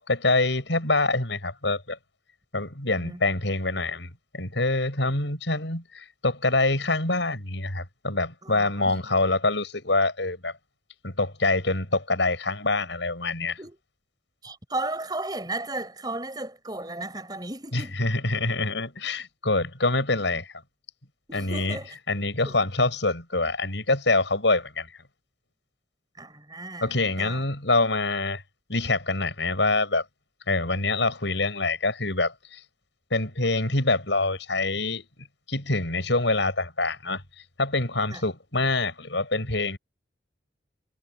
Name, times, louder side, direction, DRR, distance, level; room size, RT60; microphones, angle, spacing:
voice 1, 0.0-2.0 2.5-10.5 11.0-13.6 17.7-20.6 21.3-21.8 22.1-24.9 26.8-28.4 28.7-30.0 30.5-32.6 33.1-37.2 37.6-39.8, left 2 dB, 75° left, 6.3 m, -25 dB
voice 2, 2.9-3.2 8.4-9.0 13.6-13.8 14.4-18.0 21.3-22.0 22.4-22.6 26.2-27.4 38.1-38.2, right 2 dB, 20° right, 7.2 m, -35 dB
head